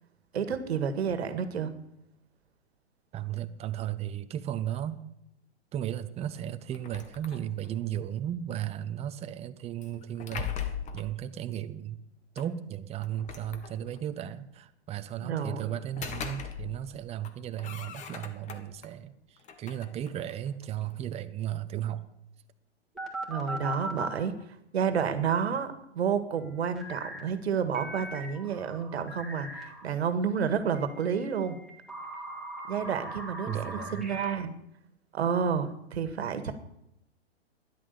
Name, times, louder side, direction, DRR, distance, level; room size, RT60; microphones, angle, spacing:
voice 1, 0.3-1.7 15.2-15.7 23.3-24.3 24.7-31.6 32.7-34.5 35.1-36.5, right 7 dB, 70° right, 10 dB, 1.8 m, -30 dB
voice 2, 3.1-5.0 5.7-10.7 10.9-12.0 12.3-19.1 19.6-22.0 25.5-25.6 33.5-34.0, right 11 dB, 20° right, 11 dB, 0.8 m, -35 dB
sound 1, 6.7-7.8 9.8-11.1 12.4-12.5 13.0-14.1 15.7-16.9 17.2-18.9 19.4-21.0, left 8 dB, 20° left, 1.4 m, -40 dB
sound 2, 23.0-24.2 26.8-27.2 27.7-29.9 30.7-34.3, right 1 dB, ahead, 2.9 m, -40 dB
12.5 x 11.0 x 6.8 m, 0.80 s
hypercardioid pair, 120°, 34 cm